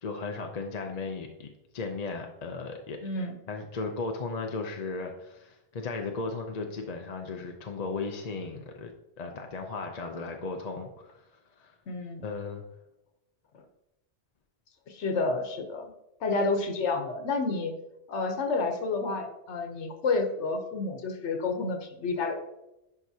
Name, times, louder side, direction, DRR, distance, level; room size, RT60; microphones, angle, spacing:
voice 1, 0.0-3.0 3.5-11.3 11.6-11.8 12.2-12.6, left 3 dB, 45° left, 3 dB, 0.6 m, -36 dB
voice 2, 3.0-3.3 11.9-12.2 14.9-15.9 16.2-17.7 18.1-22.3, left 3 dB, 90° left, 5 dB, 1.2 m, -30 dB
10.5 x 4.6 x 2.8 m, 0.90 s
omnidirectional pair, 1.2 m